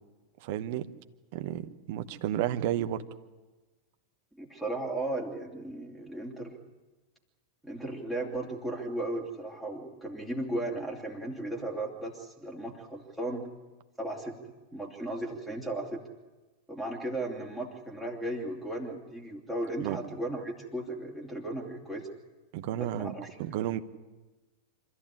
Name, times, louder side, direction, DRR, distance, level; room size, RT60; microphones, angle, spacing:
voice 1, 0.4-0.9 1.3-3.0 19.8-20.0 22.5-23.8, right 12 dB, 50° right, 10 dB, 1.1 m, -32 dB
voice 2, 4.4-6.5 7.6-13.5 14.0-14.4 14.7-16.0 16.7-22.1 22.8-23.4, right 1 dB, 5° right, -3 dB, 2.9 m, -36 dB
25.0 x 14.0 x 9.9 m, 1.2 s
figure-of-eight pair, 90°, 0 cm